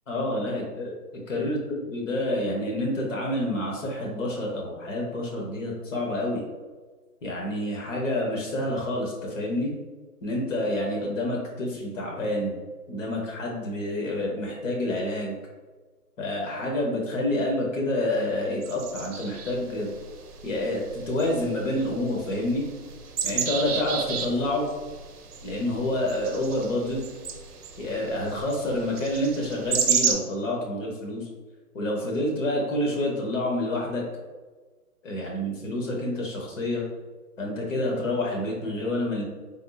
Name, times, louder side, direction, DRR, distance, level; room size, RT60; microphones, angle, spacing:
voice 1, 0.1-0.9 1.3-6.4 7.2-9.7 10.2-12.6 12.9-15.4 16.2-19.9 20.4-22.7 23.2-24.7 25.4-27.0 27.8-31.2 31.7-34.0 35.0-36.8 37.4-39.2, left 1 dB, 55° left, -1 dB, 1.0 m, -28 dB
sound 1, 18.6-30.1, right 7 dB, 75° right, 0.6 m, -33 dB
3.5 x 2.7 x 2.3 m, 1.3 s
hypercardioid pair, 160°, 46 cm